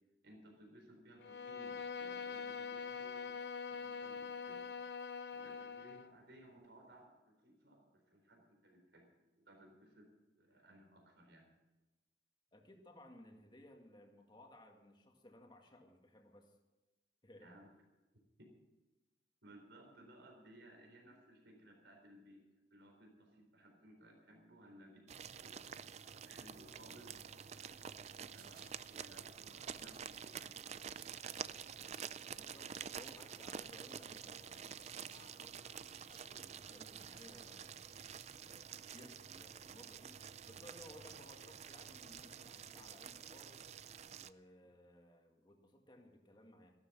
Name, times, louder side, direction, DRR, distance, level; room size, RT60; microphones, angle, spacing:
voice 1, 0.2-4.7 5.3-9.1 9.3-11.5 17.4-17.7 18.4-18.5 19.4-25.0 25.4-27.9 28.2-30.7, right 1 dB, 80° right, 2 dB, 4.0 m, -61 dB
Bowed string instrument, 1.2-6.1, left 5 dB, 65° left, 0.8 m, -44 dB
voice 2, 12.5-16.6 17.2-17.5 32.3-38.0 38.4-40.2 40.4-43.6 44.1-46.7, left 1 dB, 25° left, 3 dB, 2.0 m, -60 dB
sound 1, 25.1-44.3, right 7 dB, 40° right, 0.4 m, -49 dB
sound 2, 28.4-29.0 29.6-35.4 35.6-39.4, right 6 dB, 55° right, 3.1 m, -67 dB
15.5 x 12.0 x 6.1 m, 1.1 s
head